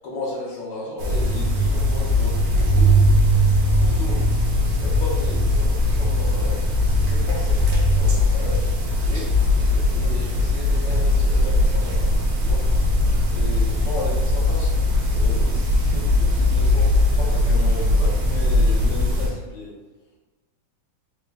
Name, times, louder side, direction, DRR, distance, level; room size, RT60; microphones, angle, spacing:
voice 1, 0.0-3.5 3.8-4.3 4.7-6.6 7.0-8.6 9.1-12.6 13.3-14.7 15.1-16.9 17.2-19.7, left 2 dB, 70° left, -3 dB, 1.2 m, -35 dB
sound 1, 1.0-19.3, left 1 dB, 70° right, 0.9 m, -19 dB
3.8 x 2.0 x 3.4 m, 1.2 s
omnidirectional pair, 2.3 m